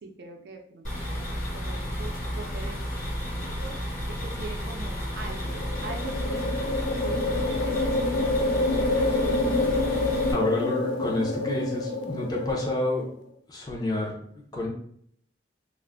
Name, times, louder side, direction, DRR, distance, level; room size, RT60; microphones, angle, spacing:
voice 1, 0.0-2.8 3.2-9.0, right 3 dB, 70° right, 2 dB, 0.4 m, -43 dB
sound 1, 0.8-10.3, equal, 45° left, 1.2 m, -32 dB
sound 2, 5.4-13.1, left 2 dB, 90° left, 0.3 m, -27 dB
voice 2, 10.3-13.1 13.5-14.7, left 1 dB, 20° left, -1 dB, 0.5 m, -29 dB
2.4 x 2.0 x 3.4 m, 0.65 s
head